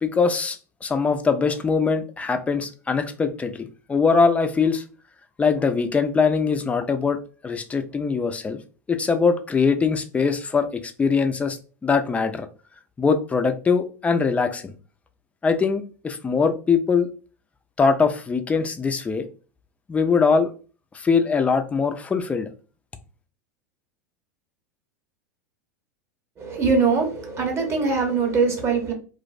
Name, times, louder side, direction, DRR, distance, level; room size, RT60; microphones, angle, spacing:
voice 1, 0.0-4.8 5.4-8.6 8.9-11.6 11.8-12.5 13.0-14.7 15.4-17.1 17.8-19.3 19.9-20.5 20.9-22.5, left 5 dB, 15° left, 8 dB, 0.3 m, -22 dB
voice 2, 26.4-28.9, right 4 dB, 30° right, 3 dB, 0.8 m, -22 dB
2.5 x 2.0 x 2.4 m, 0.36 s
hypercardioid pair, 95°, 9 cm